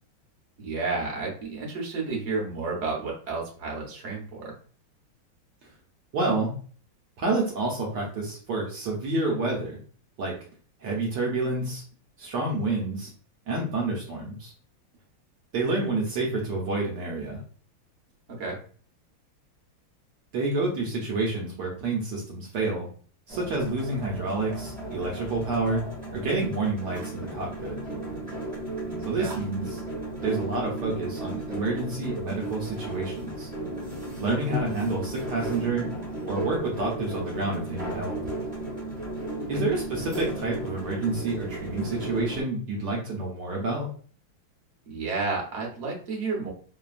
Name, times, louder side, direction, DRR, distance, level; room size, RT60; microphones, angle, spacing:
voice 1, 0.6-4.5 18.3-18.6 28.8-29.4 39.5-39.6 44.8-46.5, right 3 dB, 50° right, -2 dB, 0.9 m, -31 dB
voice 2, 6.1-6.5 7.2-9.8 10.2-10.3 10.8-11.8 12.2-13.1 13.5-14.5 15.5-17.4 20.3-22.9 23.3-25.8 26.1-27.8 29.1-29.8 30.2-33.5 34.2-35.9 36.3-38.2 39.5-43.9, right 2 dB, 70° right, -2 dB, 1.2 m, -28 dB
sound 1, 23.3-42.4, right 2 dB, 20° right, 1.1 m, -35 dB
3.2 x 2.2 x 2.3 m, 0.43 s
omnidirectional pair, 2.2 m